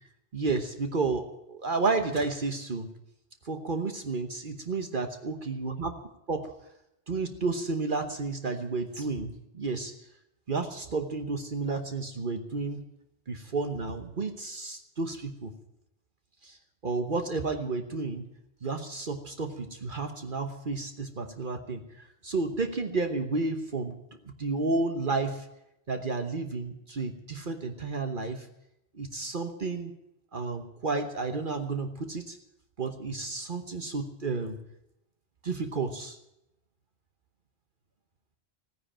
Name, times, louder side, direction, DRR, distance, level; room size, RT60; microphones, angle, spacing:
voice 1, 0.3-2.9 3.4-5.9 6.3-6.5 7.1-9.9 10.5-12.8 13.3-15.5 16.4-16.6 16.8-18.3 18.6-24.0 24.2-25.5 25.9-28.5 28.9-29.9 30.3-32.4 32.8-34.6 35.4-36.2, right 3 dB, 50° right, 7 dB, 1.3 m, -31 dB
16.5 x 10.0 x 8.9 m, 0.84 s
omnidirectional pair, 1.1 m